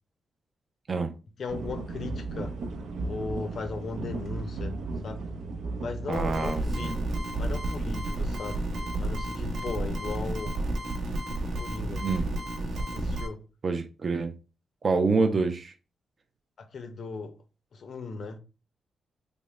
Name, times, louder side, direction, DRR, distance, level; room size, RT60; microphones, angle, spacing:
voice 1, 1.4-2.6 3.1-5.3 5.8-7.1 7.3-8.6 9.0-10.6 11.4-12.1 12.9-13.4 16.6-17.4 17.7-18.4, left 4 dB, 50° left, 0.6 m, -37 dB
sound 1, 1.5-9.2, right 3 dB, 85° right, 0.6 m, -36 dB
voice 2, 6.1-7.0 12.0-12.3 13.6-14.3 14.8-15.7, right 4 dB, 35° right, 0.4 m, -27 dB
sound 2, 6.1-13.3, right 1 dB, 60° right, 0.9 m, -31 dB
3.5 x 2.0 x 4.2 m
wide cardioid pair, 155°, 0 cm